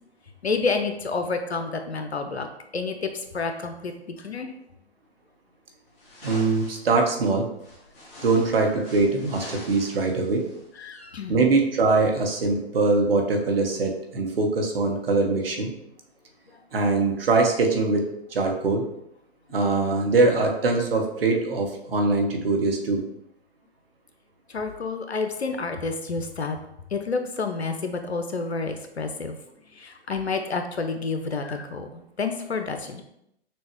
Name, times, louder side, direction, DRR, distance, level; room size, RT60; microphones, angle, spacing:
voice 1, 0.4-2.5 2.7-4.5 10.8-11.4 24.5-26.6 26.9-29.4 29.7-33.0, left 4 dB, 85° left, 6 dB, 0.7 m, -29 dB
sound 1, 6.0-6.9 7.6-10.6, left 1 dB, 25° left, 1.3 m, -44 dB
voice 2, 6.2-7.5 8.2-10.4 11.3-15.7 16.7-18.9 19.5-23.0, right 3 dB, 65° right, 2 dB, 1.1 m, -22 dB
6.2 x 2.3 x 3.0 m, 0.77 s
figure-of-eight pair, 130°, 32 cm